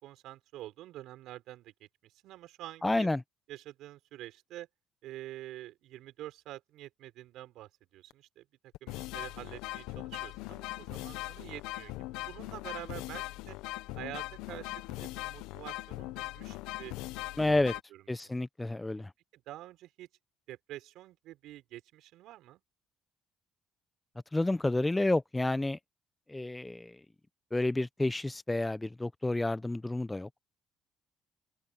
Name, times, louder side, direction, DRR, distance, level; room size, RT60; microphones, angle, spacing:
voice 1, 0.0-3.1 3.5-4.7 5.0-8.5 8.8-11.9 12.3-13.6 14.0-16.9 17.4-18.5 19.3-20.1 20.5-22.6, right 15 dB, 75° right, 5.9 m, -47 dB
voice 2, 2.8-3.2 17.4-17.7 18.1-19.1 24.3-25.8 26.3-27.0 27.5-30.3, left 2 dB, 15° left, 1.1 m, -30 dB
sound 1, 8.1-8.2 8.7-17.8, left 19 dB, 80° left, 1.1 m, -40 dB
hypercardioid pair, 60°, 0 cm